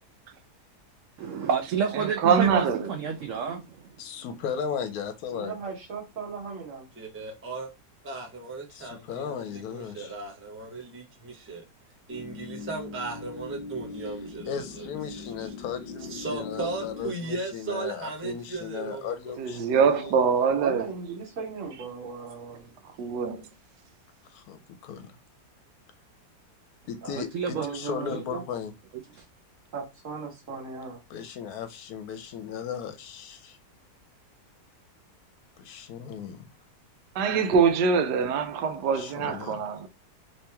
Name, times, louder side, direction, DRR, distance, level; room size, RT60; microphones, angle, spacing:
voice 1, 1.2-3.8 27.2-27.7 28.1-28.2 29.1-29.2, right 7 dB, 70° right, 0.7 m, -29 dB
voice 2, 2.0-2.9 19.4-20.9 23.0-23.4 37.1-39.9, right 6 dB, 90° right, 1.2 m, -24 dB
voice 3, 4.0-5.6 8.7-10.2 14.5-20.1 24.3-25.1 26.9-28.7 31.1-33.6 35.6-36.4 38.9-39.6, left 7 dB, 70° left, 1.0 m, -36 dB
voice 4, 5.3-6.8 20.6-22.7 27.0-27.1 27.5-28.4 29.7-31.0, right 5 dB, 55° right, 1.4 m, -37 dB
voice 5, 7.0-7.7 8.0-11.6 12.1-14.9 15.2-15.5 16.0-19.4, right 3 dB, 15° right, 0.5 m, -36 dB
sound 1, 12.1-17.1, left 4 dB, 45° left, 1.1 m, -40 dB
3.1 x 2.9 x 3.3 m
omnidirectional pair, 1.7 m